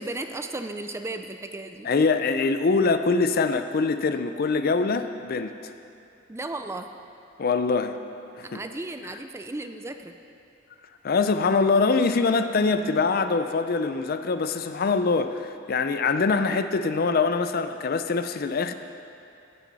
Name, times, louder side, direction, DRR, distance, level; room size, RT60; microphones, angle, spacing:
voice 1, 0.0-1.9 6.3-6.9 8.4-10.1, right 2 dB, 15° right, 7 dB, 0.4 m, -35 dB
voice 2, 1.8-5.7 7.4-8.0 8.4-8.6 11.0-18.7, left 4 dB, 50° left, 10 dB, 0.4 m, -24 dB
16.5 x 7.4 x 4.1 m, 2.6 s
head